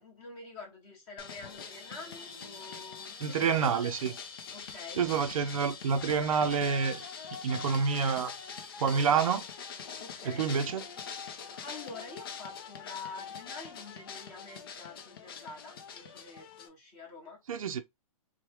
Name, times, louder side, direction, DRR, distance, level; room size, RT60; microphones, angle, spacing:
voice 1, 0.0-4.0 4.5-5.1 10.0-10.5 11.3-17.4, left 4 dB, 20° left, 1.1 m, -47 dB
sound 1, 1.2-16.7, left 6 dB, 40° left, 0.5 m, -43 dB
voice 2, 3.2-4.1 5.0-7.0 7.4-8.3 8.8-9.4 10.2-10.8 17.5-17.8, right 6 dB, 70° right, 0.5 m, -28 dB
3.1 x 2.2 x 2.8 m
hypercardioid pair, 175°, 18 cm